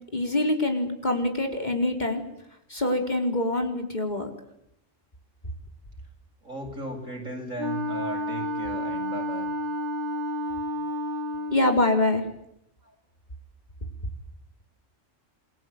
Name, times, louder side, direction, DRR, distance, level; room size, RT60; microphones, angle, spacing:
voice 1, 0.1-2.2 2.7-4.3 11.5-12.2, left 1 dB, 35° left, 3 dB, 4.3 m, -25 dB
voice 2, 6.4-9.5 12.8-12.9, right 1 dB, 90° right, 2 dB, 8.0 m, -36 dB
Wind instrument woodwind instrument, 7.6-11.8, left 1 dB, 10° left, 4.4 m, -30 dB
27.5 x 23.0 x 9.4 m, 0.78 s
omnidirectional pair, 1.3 m